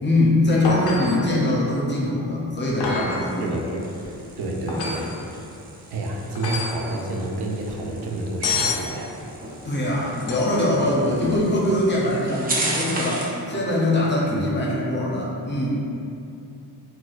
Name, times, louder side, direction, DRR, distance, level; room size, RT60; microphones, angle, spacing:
voice 1, 0.0-3.5 4.6-4.8 9.6-15.7, left 1 dB, 30° left, -5 dB, 0.5 m, -22 dB
sound 1, 0.6-1.3 2.8-3.3 4.7-5.1 6.3-6.8 8.4-8.9 10.2-10.7 13.5-13.6, left 4 dB, 80° left, 0.6 m, -27 dB
Low Speed Skid Crash OS, 2.7-13.4, right 2 dB, 25° right, 0.3 m, -35 dB
voice 2, 3.4-3.9 4.4-5.1 5.9-9.2 11.2-11.3 14.3-14.4, right 2 dB, 85° right, 0 dB, 0.5 m, -29 dB
4.0 x 2.2 x 2.4 m, 2.7 s
wide cardioid pair, 165°, 38 cm